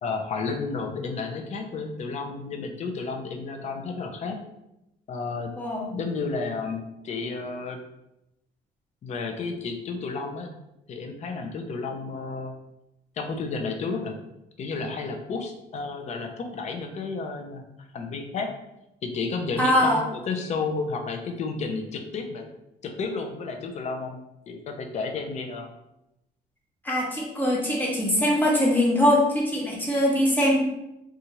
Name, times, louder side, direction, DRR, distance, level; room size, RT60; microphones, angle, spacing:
voice 1, 0.0-4.4 5.1-5.5 5.9-7.8 9.0-10.5 10.9-12.5 13.2-14.2 14.6-17.6 17.9-18.5 19.0-22.5 22.8-25.7, left 4 dB, 45° left, 4 dB, 0.5 m, -32 dB
voice 2, 5.6-5.9 19.6-20.0 26.8-30.6, left 1 dB, 10° left, -4 dB, 0.9 m, -22 dB
2.8 x 2.4 x 2.8 m, 0.87 s
cardioid pair, 110°, 17 cm